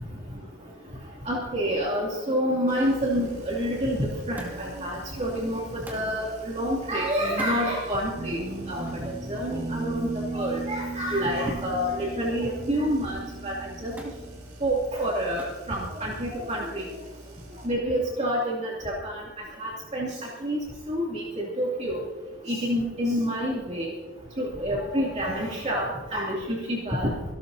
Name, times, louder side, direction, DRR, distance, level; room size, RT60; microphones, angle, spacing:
voice 1, 1.3-13.9 14.6-16.8 17.6-19.2 19.6-20.1 20.4-20.6 20.9-22.0 22.5-23.9 24.4-25.9 26.1-27.1, equal, 35° right, -4 dB, 2.5 m, -28 dB
sound 1, 2.7-17.7, right 1 dB, 75° right, 5.7 m, -47 dB
Thump thud, 4.4-4.8 5.8-6.2 7.3-7.6 8.8-9.1 11.4-11.7 12.0-12.6 14.0-14.2 15.4-15.7 16.6-17.1 18.1-18.2, equal, 10° right, 2.1 m, -43 dB
Guitar, 8.2-14.7, right 3 dB, 50° right, 1.3 m, -36 dB
26.0 x 12.5 x 2.7 m, 1.2 s
head